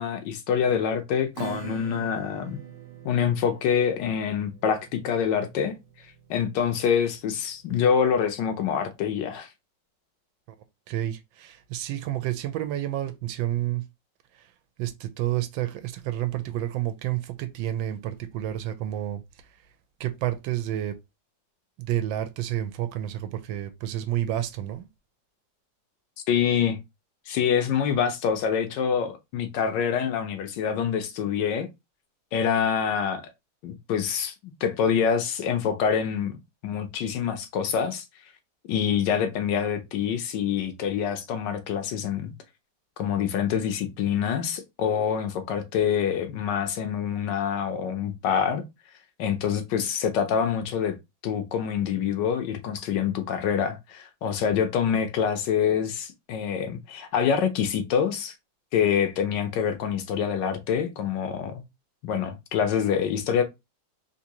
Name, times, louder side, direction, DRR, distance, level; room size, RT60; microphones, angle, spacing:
voice 1, 0.0-2.6 3.0-5.7 6.3-9.5 26.3-26.8 27.3-31.7 32.3-33.3 33.6-36.3 36.6-38.0 38.7-42.3 43.0-48.6 49.2-51.0 51.2-58.3 58.7-61.6 62.0-63.4, left 7 dB, 75° left, 1.2 m, -26 dB
Acoustic guitar / Strum, 1.4-8.6, right 8 dB, 65° right, 1.1 m, -44 dB
voice 2, 10.9-13.8 14.3-14.5 14.8-19.2 20.0-21.0 21.8-24.9, right 13 dB, 85° right, 1.3 m, -30 dB
3.7 x 2.6 x 2.9 m
omnidirectional pair, 2.1 m